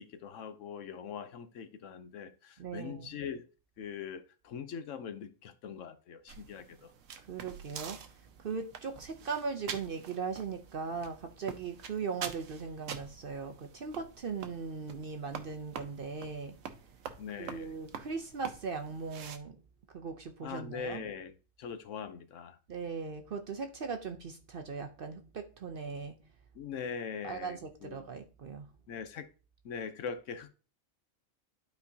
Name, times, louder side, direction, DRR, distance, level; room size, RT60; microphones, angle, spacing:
voice 1, 0.0-3.5 3.8-6.9 17.2-17.7 20.4-22.6 26.5-28.0 28.9-29.3 29.6-30.5, left 6 dB, 70° left, 1.0 m, -42 dB
voice 2, 2.6-3.1 7.3-8.0 8.4-16.5 17.4-19.6 19.9-21.1 22.7-26.2 27.2-28.7, right 5 dB, 55° right, 0.7 m, -39 dB
sound 1, 6.3-19.4, right 7 dB, 70° right, 1.1 m, -47 dB
11.5 x 4.6 x 2.7 m
omnidirectional pair, 1.4 m